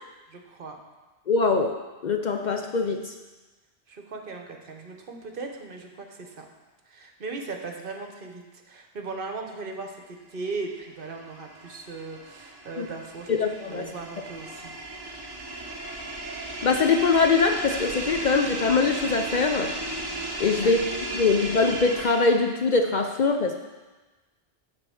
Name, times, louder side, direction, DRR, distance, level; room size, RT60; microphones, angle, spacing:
voice 1, 0.3-0.8 3.9-6.4 6.9-13.3 13.6-14.7 20.6-20.7, right 3 dB, 55° right, 3 dB, 1.1 m, -38 dB
voice 2, 1.3-3.1 12.8-12.9 13.3-13.9 16.6-19.7 20.4-20.8 21.1-23.5, left 4 dB, 55° left, 4 dB, 0.6 m, -23 dB
sound 1, 10.6-22.5, right 2 dB, 25° right, 0.9 m, -35 dB
9.5 x 4.4 x 7.0 m, 1.2 s
omnidirectional pair, 1.1 m